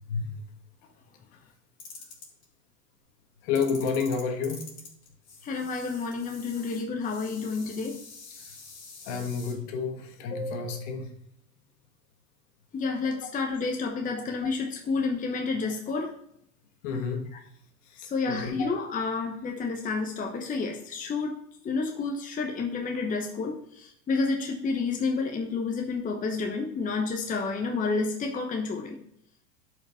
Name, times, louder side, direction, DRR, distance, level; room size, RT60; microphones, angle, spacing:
voice 1, 0.1-0.4 3.4-4.6 8.4-8.6 9.1-11.1 13.2-13.3 16.8-17.3 17.9-18.7, left 5 dB, 50° left, 5 dB, 1.7 m, -30 dB
sound 1, 1.8-2.4 3.5-9.5, left 4 dB, 30° left, 3.4 m, -46 dB
voice 2, 5.4-8.0 12.7-16.1 18.0-21.4 21.6-29.0, left 4 dB, 15° left, 3 dB, 1.0 m, -30 dB
11.5 x 5.1 x 3.6 m, 0.74 s
hypercardioid pair, 100°, 48 cm